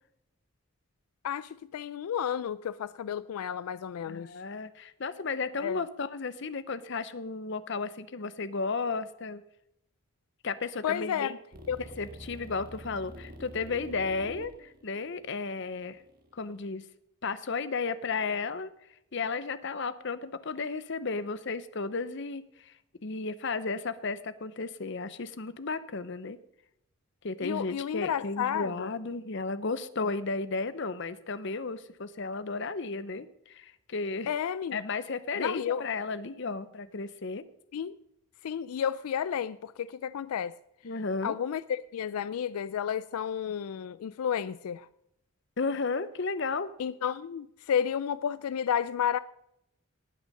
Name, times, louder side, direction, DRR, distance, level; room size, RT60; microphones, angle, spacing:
voice 1, 1.2-4.3 5.6-5.8 10.8-11.3 11.7-11.8 27.4-28.9 34.3-34.8 35.3-35.8 37.7-38.0 38.4-40.5 41.2-44.9 46.8-49.2, left 8 dB, 85° left, 0.4 m, -31 dB
voice 2, 4.0-9.4 10.4-11.4 12.0-16.0 16.3-16.8 17.2-18.7 19.1-22.7 23.0-26.4 27.2-34.3 34.7-37.4 40.8-41.3 45.6-46.7, left 4 dB, 55° left, 0.7 m, -34 dB
sound 1, 11.5-16.7, equal, 40° right, 1.5 m, -47 dB
19.0 x 6.3 x 5.3 m
head